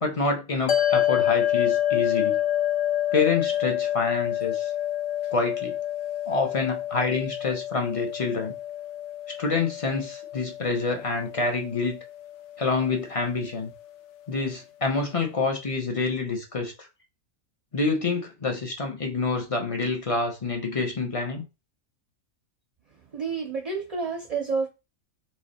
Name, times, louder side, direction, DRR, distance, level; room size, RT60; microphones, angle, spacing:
voice 1, 0.0-2.4 3.1-4.7 5.3-5.8 6.3-8.5 9.4-12.0 12.6-13.7 14.3-16.9 17.7-21.4, left 4 dB, 30° left, 0.6 m, -27 dB
sound 1, 0.7-13.2, left 11 dB, 65° left, 0.8 m, -28 dB
voice 2, 23.1-24.7, right 4 dB, 40° right, 0.5 m, -29 dB
3.2 x 3.0 x 4.1 m
omnidirectional pair, 1.5 m